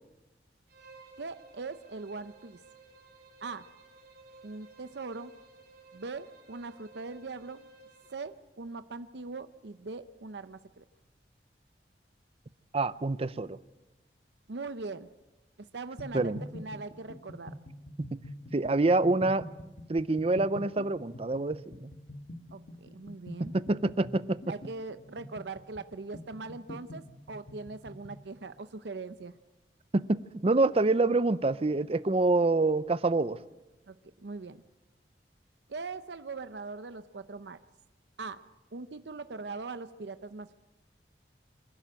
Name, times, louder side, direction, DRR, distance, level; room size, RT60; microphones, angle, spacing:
Bowed string instrument, 0.7-8.4, right 3 dB, 60° right, 4.1 m, -56 dB
voice 1, 1.2-2.6 3.4-3.7 4.4-5.3 5.9-7.7 8.1-10.8 14.5-15.1 15.7-17.5 22.5-23.5 24.5-29.3 33.9-34.6 35.7-37.6 38.2-38.4 38.7-40.5, right 3 dB, 75° right, 11 dB, 0.7 m, -41 dB
voice 2, 12.7-13.6 16.1-16.4 18.0-18.2 18.5-19.4 19.9-21.9 23.4-24.4 29.9-33.4, right 2 dB, 35° right, 15 dB, 0.6 m, -26 dB
sound 1, 16.0-28.2, left 1 dB, 50° left, 1.5 m, -45 dB
25.5 x 12.0 x 8.9 m, 1.1 s
head